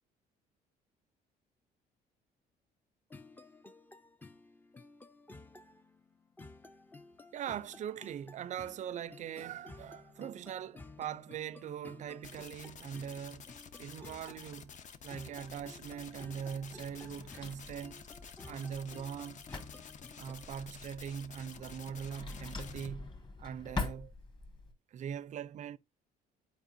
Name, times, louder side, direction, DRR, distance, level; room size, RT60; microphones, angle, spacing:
sound 1, 3.1-20.5, left 3 dB, 10° left, 0.5 m, -54 dB
voice 1, 7.3-13.5 13.8-14.7 15.0-18.0 18.4-19.4 20.2-23.1 23.4-24.1 24.9-25.8, right 8 dB, 45° right, 0.4 m, -41 dB
sound 2, 12.2-22.9, left 7 dB, 45° left, 0.8 m, -51 dB
Drawer open or close, 15.6-24.7, left 3 dB, 25° left, 1.7 m, -45 dB
9.2 x 4.7 x 2.6 m
cardioid pair, 110°, 17 cm